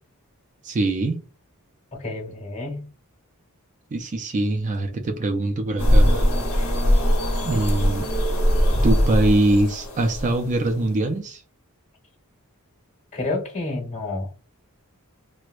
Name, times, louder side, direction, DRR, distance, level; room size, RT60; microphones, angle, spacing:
voice 1, 0.6-1.2 3.9-6.2 7.4-8.1 8.8-11.4, right 2 dB, 35° right, 0.4 m, -23 dB
voice 2, 2.0-2.9 13.1-14.3, left 2 dB, 35° left, 1.3 m, -29 dB
sound 1, 5.8-10.8, equal, 70° left, 1.1 m, -21 dB
4.5 x 2.1 x 2.4 m
head